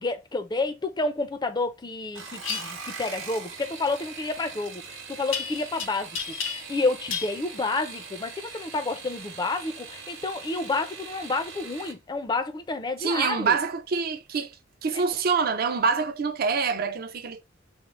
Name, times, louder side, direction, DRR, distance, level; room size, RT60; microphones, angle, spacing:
voice 1, 0.0-13.6 14.9-15.0, left 3 dB, 20° left, 0.4 m, -30 dB
sound 1, 2.0-12.0 13.2-13.7 14.1-14.5 14.8-14.9, right 5 dB, 80° right, 0.9 m, -42 dB
sound 2, 2.4-2.6 5.3-5.8 6.1-6.8 7.1-7.3, left 6 dB, 75° left, 0.5 m, -31 dB
voice 2, 13.0-14.6 14.8-17.4, right 5 dB, 50° right, 0.5 m, -26 dB
3.6 x 2.0 x 3.0 m
head